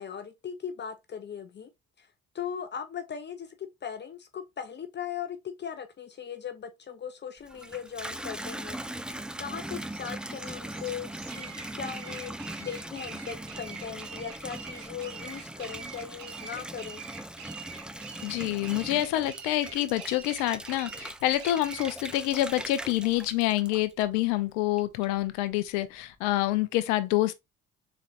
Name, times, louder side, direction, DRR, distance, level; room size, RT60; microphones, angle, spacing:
voice 1, 0.0-1.7 2.0-2.1 2.3-8.8 9.4-11.1 11.3-12.3 12.6-17.0, left 8 dB, 35° left, 0.6 m, -38 dB
Water tap faucet / Bathtub (filling or washing), 7.4-24.3 24.8-25.4, right 1 dB, 5° right, 0.3 m, -40 dB
sound 1, 9.6-22.0, right 7 dB, 70° right, 0.9 m, -45 dB
voice 2, 18.2-27.3, left 15 dB, 80° left, 0.5 m, -27 dB
4.0 x 3.2 x 2.4 m
hypercardioid pair, 50°, 29 cm